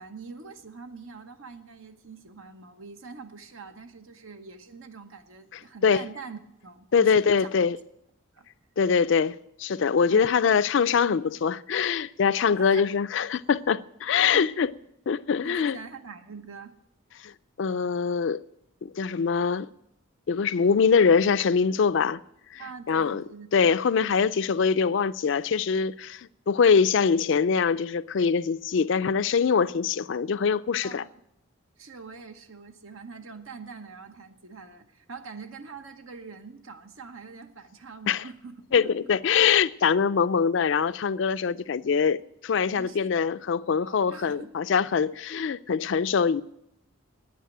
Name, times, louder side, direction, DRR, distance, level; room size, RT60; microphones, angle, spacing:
voice 1, 0.0-7.5 8.3-8.5 9.0-9.1 10.1-10.3 12.4-12.8 14.3-14.5 15.4-16.8 22.6-23.7 30.8-31.1 31.8-38.9 42.7-43.1 43.8-44.5, right 4 dB, 80° right, 1.0 m, -44 dB
voice 2, 6.9-7.8 8.8-14.7 15.1-15.8 17.2-17.3 17.6-18.4 18.8-19.7 20.3-22.2 22.5-22.6 22.9-23.2 23.5-31.0 38.1-38.2 38.7-42.2 42.4-46.4, left 6 dB, 65° left, 0.4 m, -23 dB
9.5 x 9.3 x 9.0 m
head